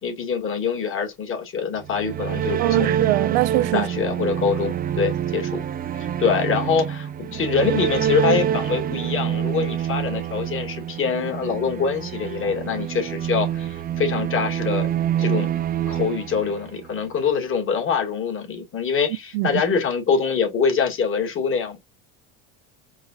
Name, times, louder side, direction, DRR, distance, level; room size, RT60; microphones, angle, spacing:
voice 1, 0.0-2.9 3.7-5.6 5.9-15.5 15.9-21.8, left 6 dB, 40° left, 2.2 m, -24 dB
sound 1, 1.8-17.0, right 10 dB, 25° right, 0.6 m, -26 dB
voice 2, 2.6-3.9 19.3-19.6, right 18 dB, 85° right, 0.5 m, -22 dB
4.7 x 3.5 x 2.6 m
supercardioid pair, 110°, 33 cm